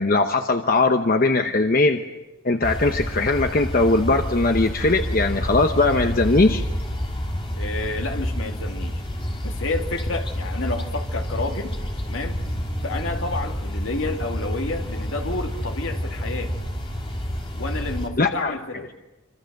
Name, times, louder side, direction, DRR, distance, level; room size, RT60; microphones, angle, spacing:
voice 1, 0.0-2.0 2.4-6.6 18.2-18.5, left 2 dB, 40° left, 6 dB, 0.9 m, -20 dB
sound 1, 2.6-18.1, equal, 25° left, 3.1 m, -29 dB
voice 2, 7.6-9.0 9.4-11.8 12.1-12.4 12.8-16.6 17.5-18.9, left 2 dB, 65° left, 4 dB, 2.1 m, -30 dB
26.5 x 25.5 x 6.6 m, 1.1 s
head